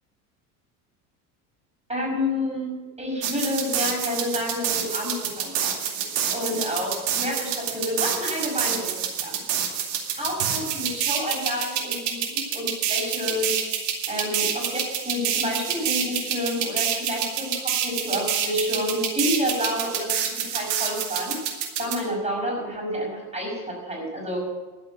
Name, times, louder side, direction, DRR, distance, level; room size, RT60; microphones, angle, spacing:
voice 1, 1.9-2.7 3.0-5.8 6.3-8.9 9.2-9.4 10.2-13.5 14.1-21.4 21.8-24.4, left 1 dB, 15° right, -1 dB, 5.7 m, -29 dB
sound 1, 3.2-22.0, right 8 dB, 65° right, 2.5 m, -27 dB
11.5 x 7.8 x 9.2 m, 1.3 s
hypercardioid pair, 80°, 45 cm